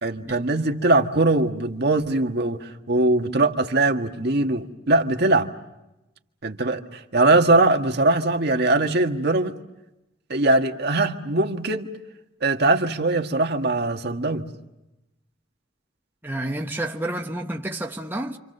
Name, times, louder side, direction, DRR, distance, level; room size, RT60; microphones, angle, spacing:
voice 1, 0.0-5.5 6.4-9.5 10.3-11.9 12.4-14.5, right 2 dB, 60° right, 1.7 m, -21 dB
voice 2, 16.2-18.4, right 1 dB, 10° right, 1.1 m, -29 dB
29.5 x 26.5 x 6.7 m
head